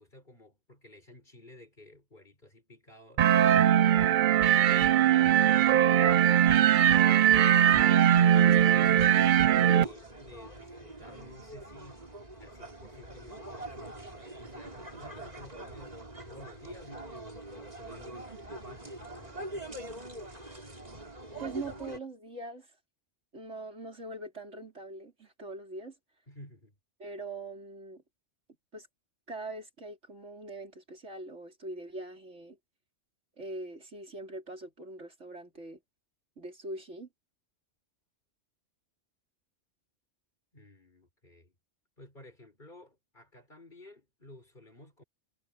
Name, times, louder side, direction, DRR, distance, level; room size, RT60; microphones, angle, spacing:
voice 1, 0.0-4.0 4.5-6.2 6.6-8.1 8.8-12.1 12.4-16.0 16.3-19.7 26.3-26.8 40.5-41.5 42.0-45.0, left 1 dB, 40° left, 5.8 m, -52 dB
sound 1, 3.2-9.8, right 10 dB, 60° right, 0.6 m, -21 dB
sound 2, 8.3-22.0, right 1 dB, 35° right, 3.9 m, -44 dB
voice 2, 21.4-22.7 23.3-26.0 27.0-28.0 28.7-28.9 29.3-32.6 33.4-35.8 36.4-37.1, right 2 dB, 80° right, 4.8 m, -42 dB
omnidirectional pair, 1.2 m